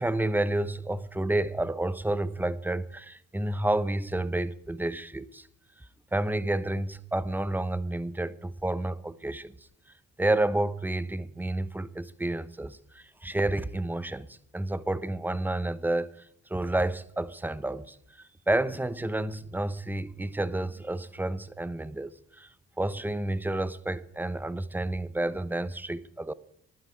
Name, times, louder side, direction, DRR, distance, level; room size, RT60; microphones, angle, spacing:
voice 1, 0.0-5.5 6.1-9.7 10.2-22.5 22.8-26.3, right 1 dB, 5° right, 0.8 m, -30 dB
12.0 x 10.0 x 9.6 m
cardioid pair, 90°, 30 cm